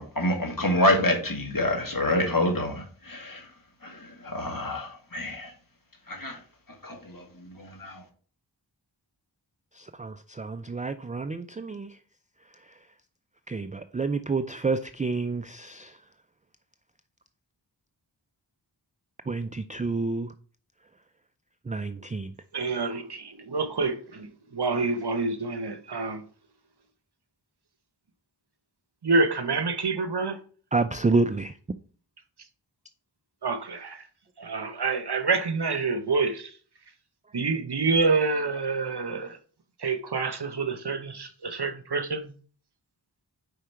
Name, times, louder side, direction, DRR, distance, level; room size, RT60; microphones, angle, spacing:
voice 1, 0.0-3.4 3.8-5.5 6.1-6.4 6.8-7.2 7.6-8.0, left 1 dB, 50° left, 2.0 m, -27 dB
voice 2, 9.8-11.9 13.5-15.9 19.3-20.3 21.7-22.3 30.7-31.5, right 3 dB, 20° right, 0.3 m, -29 dB
voice 3, 22.5-26.2 29.0-30.4 33.4-34.0 34.4-36.5 37.3-39.4 39.8-42.3, right 4 dB, 60° right, 0.9 m, -27 dB
5.0 x 4.7 x 4.4 m
wide cardioid pair, 40°, 44 cm